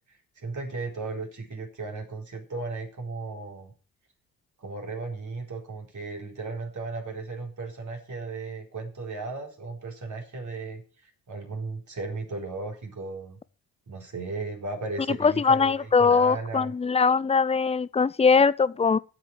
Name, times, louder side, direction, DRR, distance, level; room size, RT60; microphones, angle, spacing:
voice 1, 0.1-3.7 4.6-10.8 11.3-13.4 13.9-16.7, right 3 dB, 40° right, 4.1 m, -35 dB
voice 2, 15.2-19.0, left 5 dB, 15° left, 0.5 m, -21 dB
8.6 x 8.3 x 8.0 m
hypercardioid pair, 45°, 47 cm